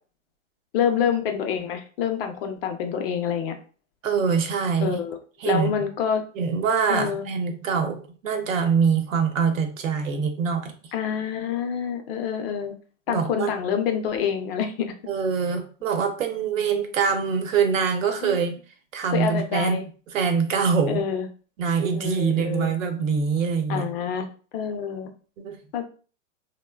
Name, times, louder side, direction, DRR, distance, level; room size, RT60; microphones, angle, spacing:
voice 1, 0.7-3.6 4.8-5.2 5.4-6.2 6.9-7.2 10.9-12.7 13.1-14.9 18.2-18.4 19.1-19.8 20.9-21.3 21.9-22.7 23.7-24.2 24.5-25.1 25.7-25.8, left 7 dB, 50° left, 6 dB, 0.5 m, -27 dB
voice 2, 4.0-5.0 5.4-5.7 6.4-10.7 13.1-13.5 15.1-18.6 18.9-19.8 20.1-21.0 21.6-23.9 25.4-25.6, right 6 dB, 90° right, 5 dB, 0.8 m, -24 dB
2.9 x 2.1 x 2.2 m, 0.39 s
hypercardioid pair, 140°, 38 cm